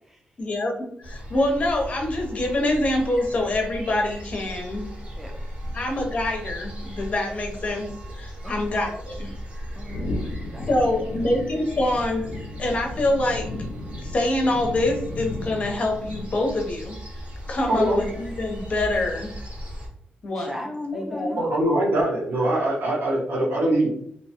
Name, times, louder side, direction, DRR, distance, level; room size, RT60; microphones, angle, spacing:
voice 1, 0.4-4.9 5.7-7.9 8.1-9.3 10.7-12.2 12.6-13.5 14.0-16.9 17.5-19.3 20.2-20.5 20.9-21.4, left 1 dB, 40° left, 2 dB, 0.6 m, -25 dB
sound 1, 1.0-19.9, equal, 35° right, 0.8 m, -37 dB
voice 2, 9.8-10.8 11.2-11.3 20.4-21.5, left 1 dB, 5° right, 0 dB, 0.4 m, -37 dB
sound 2, 9.9-16.7, left 2 dB, 90° left, 0.4 m, -35 dB
voice 3, 17.7-18.0 21.4-23.9, right 1 dB, 70° right, -4 dB, 1.0 m, -22 dB
2.7 x 2.2 x 2.7 m, 0.69 s
cardioid pair, 125°, 4 cm